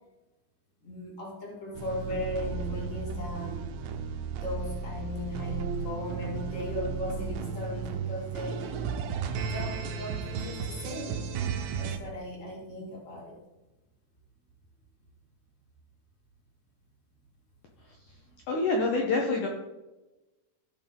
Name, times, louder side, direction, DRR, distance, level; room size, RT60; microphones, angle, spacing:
voice 1, 0.8-3.8 4.4-8.8 9.4-11.3 11.8-13.4, left 1 dB, 50° left, -2 dB, 0.9 m, -37 dB
sound 1, 1.8-12.0, right 5 dB, 90° right, 3.1 m, -34 dB
voice 2, 17.8-18.2 18.5-19.5, left 3 dB, 80° left, 0 dB, 1.8 m, -27 dB
16.5 x 5.6 x 3.7 m, 1.0 s
omnidirectional pair, 5.1 m